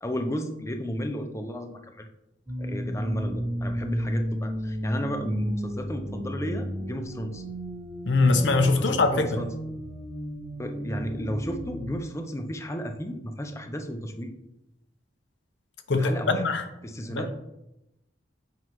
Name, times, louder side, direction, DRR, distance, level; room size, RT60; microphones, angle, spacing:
voice 1, 0.0-2.1 2.6-7.4 8.8-9.5 10.6-14.3 16.0-16.4 16.8-17.3, equal, 15° left, 5 dB, 0.6 m, -33 dB
sound 1, 2.5-12.0, equal, 15° right, 1.4 m, -33 dB
voice 2, 8.1-9.4 15.9-16.6 17.1-17.3, left 3 dB, 75° left, 7 dB, 0.7 m, -22 dB
7.9 x 5.7 x 3.1 m, 0.91 s
head